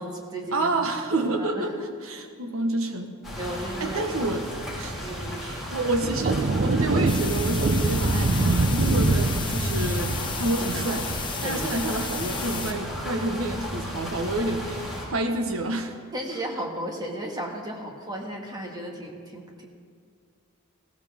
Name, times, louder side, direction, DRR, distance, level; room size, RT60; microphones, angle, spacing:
voice 1, 0.0-0.7 1.1-1.7 3.4-4.4 4.8-5.8 11.4-11.9 16.1-19.7, right 1 dB, 20° right, 0 dB, 1.9 m, -35 dB
voice 2, 0.5-1.8 2.1-3.1 3.8-4.5 4.7-4.9 5.4-16.0, right 2 dB, 75° right, 6 dB, 1.2 m, -29 dB
sound 1, 3.2-15.1, equal, ahead, 3.6 m, -35 dB
sound 2, 6.0-11.6, right 2 dB, 50° right, 0.7 m, -24 dB
sound 3, 7.1-12.7, left 5 dB, 25° left, 1.4 m, -34 dB
19.0 x 15.0 x 3.6 m, 2.1 s
head